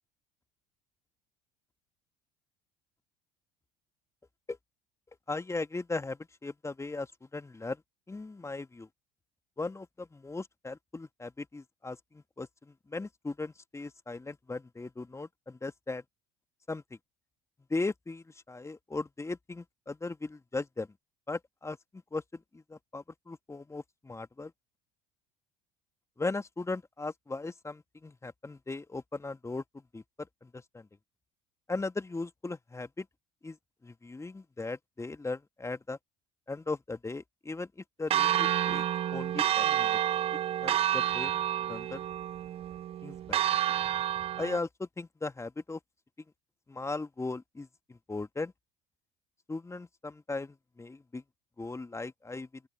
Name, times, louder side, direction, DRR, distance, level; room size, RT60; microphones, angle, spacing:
voice 1, 5.3-7.8 8.1-8.9 9.6-16.0 16.7-16.8 17.7-20.9 21.3-21.8 22.1-24.5 26.2-30.9 31.7-33.1 33.4-33.6 33.8-36.0 36.5-40.0 40.6-42.0 43.0-43.4 44.4-45.8 46.7-48.5 49.5-51.2 51.6-52.6, left 3 dB, 15° left, 1.9 m, -38 dB
Church bell, 38.1-44.6, right 11 dB, 30° right, 0.3 m, -29 dB
open air
hypercardioid pair, 65°, 19 cm